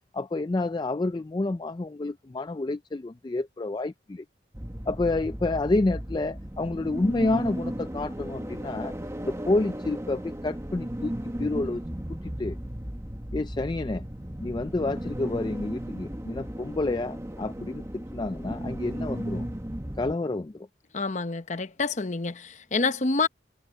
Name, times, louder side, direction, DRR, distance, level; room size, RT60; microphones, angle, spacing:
voice 1, 0.1-4.2 4.9-8.9 9.2-11.1 11.4-11.8 12.4-12.6 13.3-14.1 14.4-19.5 20.0-20.7, left 2 dB, 25° left, 0.4 m, -29 dB
sound 1, 4.5-20.1, equal, 15° right, 1.4 m, -35 dB
voice 2, 20.9-23.3, left 3 dB, 40° left, 0.9 m, -27 dB
head